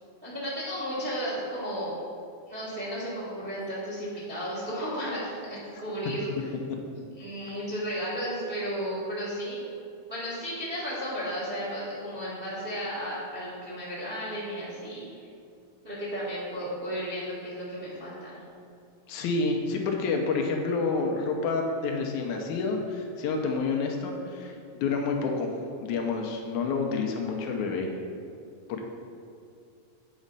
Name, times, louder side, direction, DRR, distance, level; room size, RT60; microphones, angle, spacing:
voice 1, 0.2-2.0 2.5-6.5 7.2-9.6 10.1-15.1 15.8-18.5, equal, 30° right, -7 dB, 1.1 m, -34 dB
voice 2, 19.1-25.5 25.8-27.9 28.7-28.8, left 4 dB, 80° left, 2 dB, 2.0 m, -29 dB
8.2 x 4.2 x 5.2 m, 2.5 s
omnidirectional pair, 3.5 m